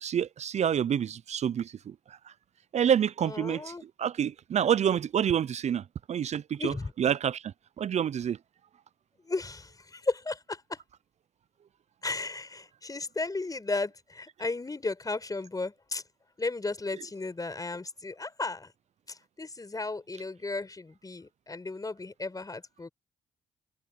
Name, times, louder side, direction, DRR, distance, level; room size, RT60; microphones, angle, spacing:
voice 1, 0.0-1.9 2.7-3.7 4.0-7.4 7.8-8.4, right 9 dB, 55° right, 0.7 m, -28 dB
voice 2, 3.2-3.8 6.6-6.9 9.2-10.8 12.0-16.0 16.4-18.7 19.1-22.9, left 3 dB, 25° left, 5.5 m, -35 dB
supercardioid pair, 55°, 13 cm